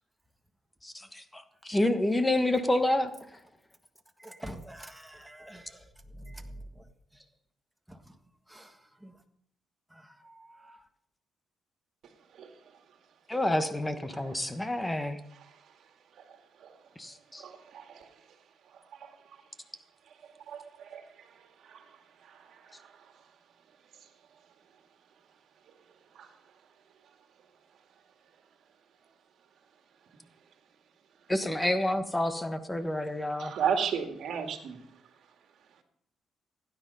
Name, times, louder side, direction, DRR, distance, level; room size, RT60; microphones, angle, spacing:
voice 1, 0.8-3.1 13.3-15.2 17.0-17.4 31.3-33.5, left 1 dB, 10° left, 9 dB, 1.3 m, -28 dB
voice 2, 4.2-6.9 7.9-8.2 8.5-9.2 9.9-10.8, right 1 dB, 5° right, 5 dB, 1.6 m, -47 dB
voice 3, 17.4-18.1 18.9-19.2 20.5-21.0 21.6-21.9 22.2-22.9 26.2-26.3 33.4-34.9, right 7 dB, 70° right, 6 dB, 1.9 m, -34 dB
16.0 x 10.0 x 5.5 m, 0.70 s
cardioid pair, 90°, 0 cm